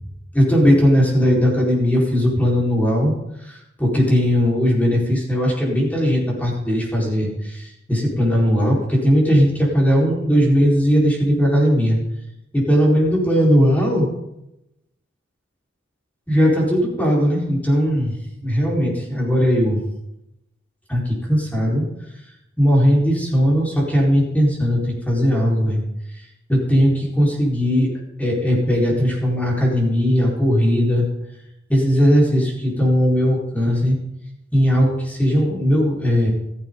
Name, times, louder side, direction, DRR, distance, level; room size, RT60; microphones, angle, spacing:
voice 1, 0.3-3.1 3.4-12.0 12.5-14.1 16.3-18.1 18.4-19.8 20.9-21.8 22.6-25.8 26.5-27.9 28.2-31.1 31.7-34.0 34.5-36.3, equal, 10° left, -4 dB, 4.6 m, -18 dB
15.0 x 14.5 x 3.9 m, 0.87 s
head